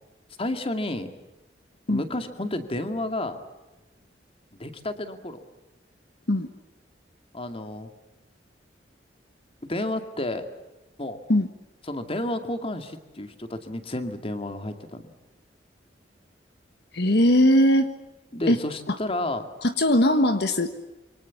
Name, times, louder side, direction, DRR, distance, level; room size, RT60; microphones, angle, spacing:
voice 1, 0.4-1.1 1.9-3.4 4.6-5.4 7.3-7.9 9.6-10.5 11.0-11.2 11.9-15.0 18.3-19.4, left 1 dB, 30° left, 8 dB, 2.3 m, -31 dB
voice 2, 16.9-17.9 18.5-18.6 18.9-19.0 19.6-20.7, left 1 dB, 65° left, 9 dB, 1.4 m, -20 dB
27.0 x 24.5 x 7.3 m, 1.1 s
head